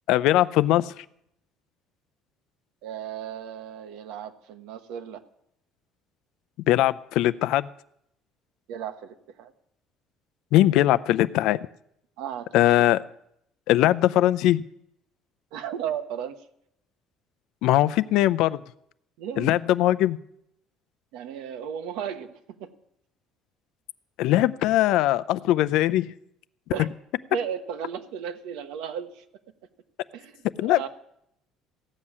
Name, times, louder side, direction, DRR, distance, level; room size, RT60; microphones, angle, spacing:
voice 1, 0.1-1.0 6.7-7.7 10.5-11.6 12.5-13.0 13.7-14.6 17.6-18.6 19.4-20.2 24.2-26.1 30.6-30.9, left 14 dB, 65° left, 15 dB, 0.5 m, -21 dB
voice 2, 2.8-5.2 8.7-9.5 12.2-12.5 12.8-12.9 15.5-16.4 19.2-19.6 21.1-22.3 22.6-22.7 26.7-26.9 27.3-29.2 30.1-30.9, right 8 dB, 80° right, 9 dB, 1.2 m, -35 dB
15.5 x 7.4 x 9.7 m, 0.75 s
cardioid pair, 170°, 0 cm